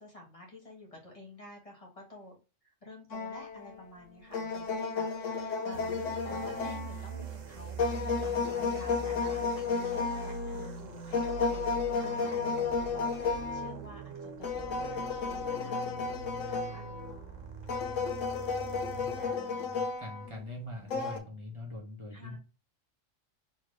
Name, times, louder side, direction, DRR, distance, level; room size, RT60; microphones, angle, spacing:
voice 1, 0.0-2.4 2.6-16.9 22.1-22.4, left 1 dB, 25° left, -1 dB, 1.5 m, -50 dB
sound 1, 3.1-3.8 4.3-7.3 7.8-10.7 11.1-13.8 14.4-17.2 17.7-20.3 20.9-21.2, left 4 dB, 80° left, 1.0 m, -33 dB
sound 2, 5.7-19.4, right 4 dB, 85° right, 1.3 m, -43 dB
voice 2, 18.4-22.4, left 1 dB, 25° right, -1 dB, 1.4 m, -44 dB
4.3 x 3.0 x 3.2 m, 0.33 s
omnidirectional pair, 1.3 m